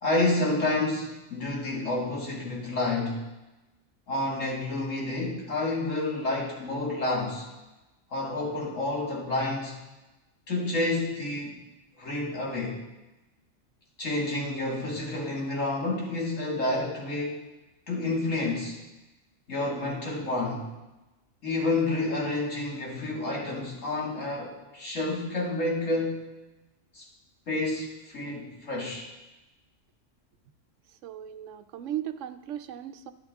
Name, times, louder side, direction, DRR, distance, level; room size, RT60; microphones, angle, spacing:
voice 1, 0.0-3.2 4.1-7.5 8.1-9.8 10.5-11.5 12.0-12.8 14.0-17.5 17.9-18.8 19.5-20.7 21.4-26.3 26.9-27.1 27.5-29.1, left 2 dB, 90° left, -3 dB, 2.5 m, -29 dB
voice 2, 31.0-33.1, right 11 dB, 80° right, 11 dB, 0.9 m, -36 dB
11.5 x 11.0 x 3.6 m, 1.1 s
omnidirectional pair, 1.3 m